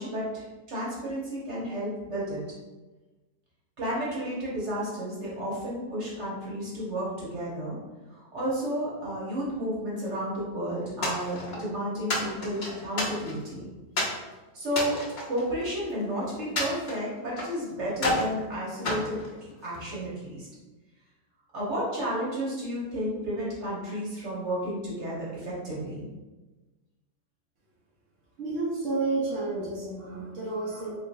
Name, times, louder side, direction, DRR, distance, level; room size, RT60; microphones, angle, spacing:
voice 1, 0.0-2.4 3.8-7.8 8.1-13.7 14.5-15.0 15.3-20.5 21.5-26.0, equal, 40° right, -7 dB, 1.3 m, -32 dB
sound 1, 11.0-11.7 12.1-13.5 14.0-14.2 14.7-16.0 16.6-17.6 18.0-18.3 18.8-19.9, left 1 dB, 85° left, 0.4 m, -31 dB
voice 2, 28.4-30.9, right 3 dB, 65° right, -6 dB, 0.7 m, -30 dB
3.8 x 3.1 x 2.6 m, 1.2 s
omnidirectional pair, 2.2 m